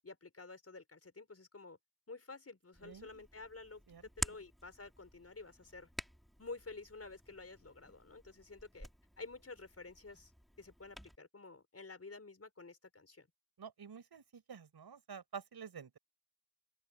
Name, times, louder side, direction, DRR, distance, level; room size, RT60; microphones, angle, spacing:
voice 1, 0.0-1.8 2.1-5.9 6.4-8.9 9.2-10.3 10.6-13.3, left 3 dB, 35° left, 5.5 m, -51 dB
Hands, 2.7-11.1, equal, ahead, 5.9 m, -49 dB
voice 2, 2.8-3.2 3.9-4.0 13.6-16.0, right 6 dB, 65° right, 6.1 m, -50 dB
open air
cardioid pair, 55°, 40 cm